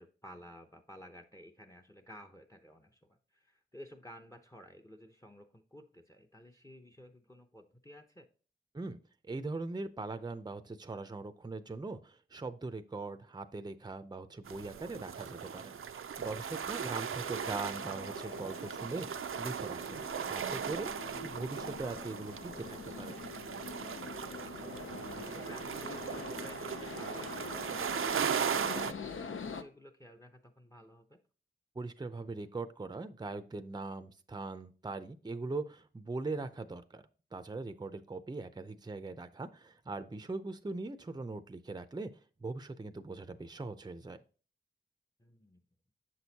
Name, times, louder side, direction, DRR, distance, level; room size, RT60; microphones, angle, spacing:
voice 1, 0.0-8.3 21.1-21.5 24.1-24.9 25.3-28.1 29.5-31.2 45.2-45.6, equal, 15° left, 7 dB, 0.7 m, -54 dB
voice 2, 9.3-20.0 20.3-23.2 31.8-37.0 37.3-42.1 42.4-44.2, right 3 dB, 20° right, 10 dB, 0.6 m, -41 dB
sound 1, 14.4-28.9, right 7 dB, 80° right, 0.5 m, -38 dB
sound 2, 16.1-29.6, left 5 dB, 70° left, 0.7 m, -45 dB
7.5 x 6.3 x 2.8 m, 0.38 s
wide cardioid pair, 90°, 21 cm